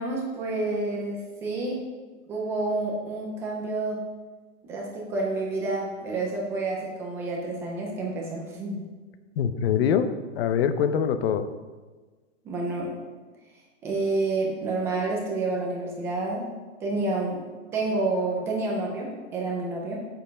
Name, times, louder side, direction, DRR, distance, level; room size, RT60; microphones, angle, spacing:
voice 1, 0.0-1.8 2.3-4.0 4.6-8.9 12.4-13.0 13.8-17.4 17.7-20.1, right 2 dB, 5° right, -2 dB, 0.3 m, -29 dB
voice 2, 9.4-11.4, left 8 dB, 50° left, 10 dB, 0.8 m, -24 dB
7.8 x 6.7 x 5.1 m, 1.3 s
supercardioid pair, 160°, 38 cm